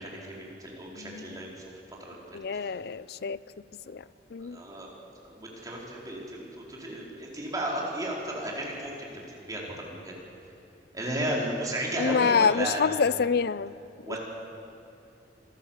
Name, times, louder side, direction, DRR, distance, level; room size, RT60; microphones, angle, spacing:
voice 1, 0.0-1.6 2.0-2.2 2.5-2.7 4.4-4.9 5.2-10.1 10.9-13.0 14.0-14.2, right 1 dB, 20° right, -3 dB, 4.3 m, -34 dB
voice 2, 2.3-3.4 3.9-4.0 4.3-4.6 12.0-13.7, left 5 dB, 60° left, 19 dB, 0.5 m, -26 dB
27.0 x 14.0 x 7.3 m, 2.9 s
head